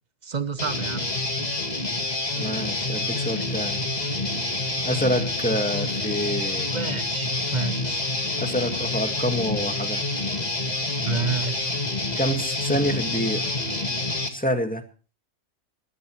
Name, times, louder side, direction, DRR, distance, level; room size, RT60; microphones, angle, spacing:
voice 1, 0.2-1.1 6.7-8.0 10.8-11.7, right 5 dB, 40° right, 1.0 m, -30 dB
Guitar, 0.6-14.3, left 2 dB, 35° left, 2.2 m, -27 dB
voice 2, 2.4-3.8 4.8-6.8 8.4-10.0 12.2-13.5 14.3-14.8, equal, 5° left, 1.9 m, -27 dB
22.0 x 14.0 x 3.2 m
omnidirectional pair, 1.3 m